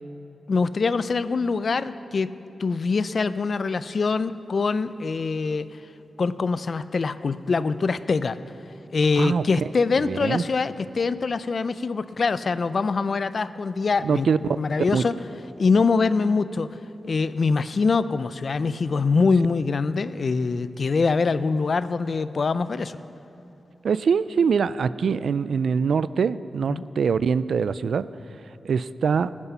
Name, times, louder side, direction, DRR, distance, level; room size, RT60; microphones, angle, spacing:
voice 1, 0.5-2.3 2.6-5.7 6.2-8.4 8.9-15.2 15.6-16.7 17.0-23.0 26.7-26.8, left 4 dB, 60° left, 14 dB, 0.4 m, -24 dB
voice 2, 10.0-10.4 14.0-14.4 14.9-15.0 23.8-28.1 28.6-29.3, right 6 dB, 80° right, 16 dB, 0.3 m, -23 dB
18.0 x 9.7 x 5.6 m, 2.8 s
cardioid pair, 80°, 0 cm